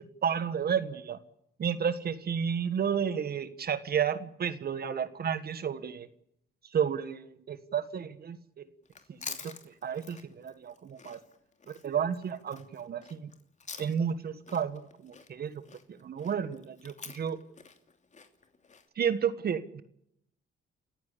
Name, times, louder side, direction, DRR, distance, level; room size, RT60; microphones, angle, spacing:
voice 1, 0.2-1.2 1.6-6.1 6.7-8.6 9.3-11.2 11.7-13.3 13.8-15.6 15.9-17.4 18.9-19.8, right 7 dB, 50° right, 12 dB, 1.5 m, -32 dB
Chewing mastication, 8.8-14.2 14.5-18.9, left 5 dB, 35° left, 2.8 m, -47 dB
28.5 x 15.5 x 8.4 m, 0.76 s
cardioid pair, 90°, 20 cm